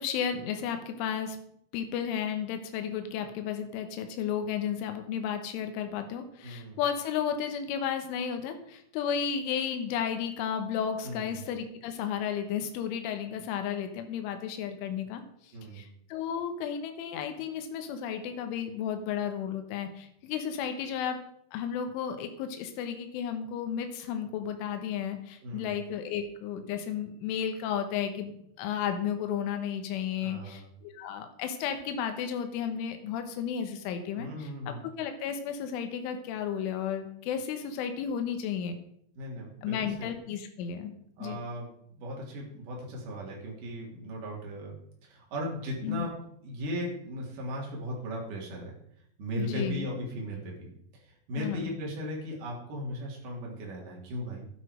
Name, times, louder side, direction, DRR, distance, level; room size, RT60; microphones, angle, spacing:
voice 1, 0.0-1.4 1.7-15.2 15.7-21.2 21.5-38.8 39.6-40.9 41.2-41.4 45.8-46.1 49.4-49.9 51.3-51.7, left 8 dB, 85° left, 7 dB, 3.7 m, -33 dB
voice 2, 6.4-6.8 11.0-11.4 15.5-15.8 25.4-25.7 30.2-30.7 34.1-34.8 39.2-40.1 41.2-41.7 42.0-44.7 45.0-46.1 46.4-48.7 49.2-50.7 51.0-54.4, equal, 45° right, -2 dB, 4.2 m, -37 dB
12.0 x 10.0 x 5.1 m, 0.71 s
omnidirectional pair, 5.5 m